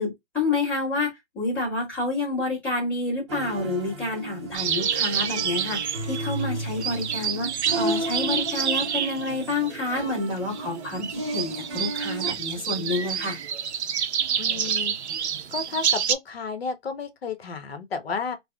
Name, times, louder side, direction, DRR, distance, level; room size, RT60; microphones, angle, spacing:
voice 1, 0.0-13.4, left 2 dB, 5° left, 1.5 m, -29 dB
sound 1, 3.3-12.3, right 1 dB, 25° right, 0.6 m, -34 dB
sound 2, 4.5-16.2, right 8 dB, 70° right, 0.5 m, -29 dB
voice 2, 14.4-14.9 15.5-18.4, left 5 dB, 60° left, 0.9 m, -32 dB
3.3 x 2.1 x 2.2 m
hypercardioid pair, 155°, 35 cm